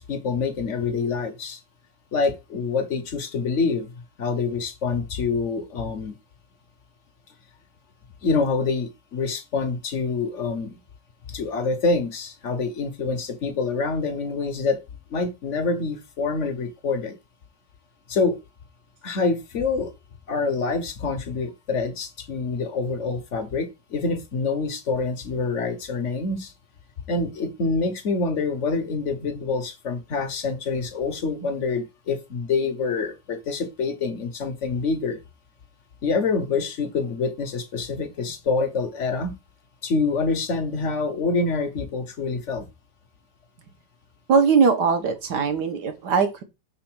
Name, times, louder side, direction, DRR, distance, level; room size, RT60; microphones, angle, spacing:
voice 1, 0.0-1.6 2.1-3.9 4.2-6.1 8.2-10.7 11.3-14.8 15.1-17.1 18.1-18.4 19.0-19.9 20.3-26.5 27.1-35.2 36.0-39.3 39.8-42.7, left 4 dB, 50° left, 1.0 m, -26 dB
voice 2, 44.3-46.4, right 5 dB, 65° right, 1.6 m, -20 dB
6.8 x 4.0 x 6.1 m
omnidirectional pair, 2.0 m